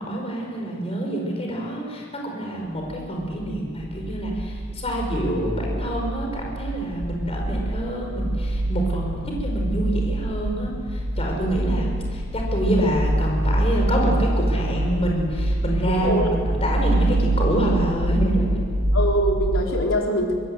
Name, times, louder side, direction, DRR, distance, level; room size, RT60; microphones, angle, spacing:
voice 1, 0.0-18.6, right 1 dB, 30° left, 0 dB, 5.2 m, -26 dB
sound 1, 2.9-19.6, right 1 dB, 75° right, 3.4 m, -25 dB
voice 2, 16.0-16.3 18.9-20.3, equal, 85° left, 0 dB, 4.2 m, -23 dB
24.0 x 20.5 x 7.9 m, 2.2 s
head